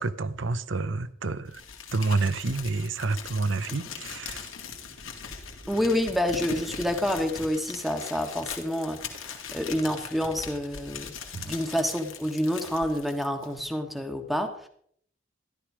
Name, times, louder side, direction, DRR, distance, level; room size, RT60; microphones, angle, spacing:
voice 1, 0.0-1.6 1.9-4.5 11.3-11.5, right 3 dB, 70° right, 0.8 m, -29 dB
Crumpling crinkling, 1.5-13.6, left 6 dB, 85° left, 2.1 m, -40 dB
voice 2, 5.7-11.1 11.4-14.7, left 1 dB, ahead, 1.5 m, -28 dB
13.5 x 12.0 x 4.9 m
head